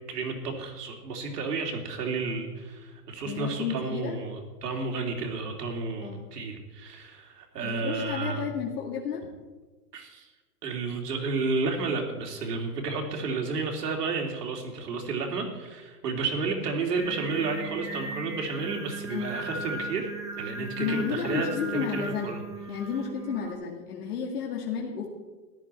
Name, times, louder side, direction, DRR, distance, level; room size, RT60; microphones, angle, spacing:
voice 1, 0.1-8.5 9.9-10.3 10.6-20.1 20.4-22.4, right 4 dB, 75° right, 3 dB, 2.9 m, -31 dB
voice 2, 3.2-4.2 6.0-6.3 7.6-9.2 19.1-19.4 20.6-22.4 22.7-25.1, left 7 dB, 70° left, 0 dB, 2.2 m, -32 dB
Singing, 16.9-23.5, right 3 dB, 5° right, 1.0 m, -37 dB
14.0 x 11.0 x 4.4 m, 1.3 s
hypercardioid pair, 150°, 47 cm